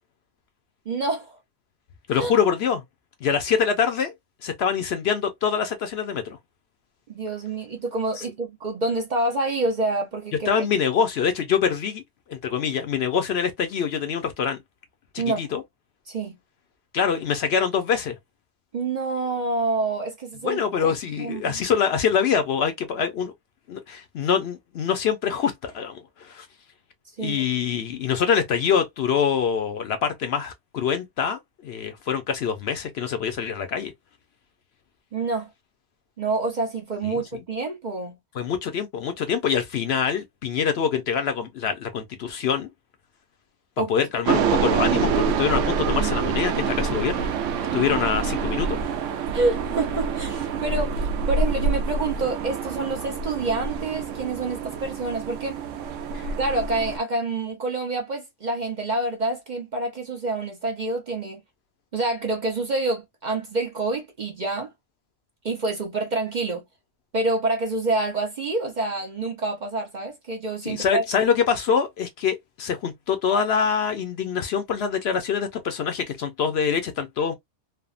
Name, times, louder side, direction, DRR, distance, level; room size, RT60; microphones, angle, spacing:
voice 1, 0.9-1.4 2.2-2.3 7.1-10.7 15.2-15.5 16.1-16.4 18.7-20.8 21.2-21.5 27.2-27.4 35.1-35.5 36.2-38.2 43.8-43.9 44.3-44.4 47.9-48.0 49.3-55.6 56.4-61.4 61.9-64.7 65.4-66.6 67.1-71.0, right 2 dB, 45° right, 0.7 m, -27 dB
voice 2, 2.1-2.8 3.2-4.1 4.4-6.4 8.2-8.3 10.5-12.0 12.3-14.6 15.4-15.6 16.9-18.2 20.4-23.3 23.7-26.5 27.2-33.9 37.0-37.4 38.3-42.7 43.9-47.3 47.7-48.8 56.1-56.3 70.6-77.3, left 7 dB, 65° left, 0.8 m, -25 dB
sound 1, 44.2-57.0, right 5 dB, 85° right, 0.9 m, -26 dB
3.4 x 2.0 x 2.4 m
omnidirectional pair, 1.3 m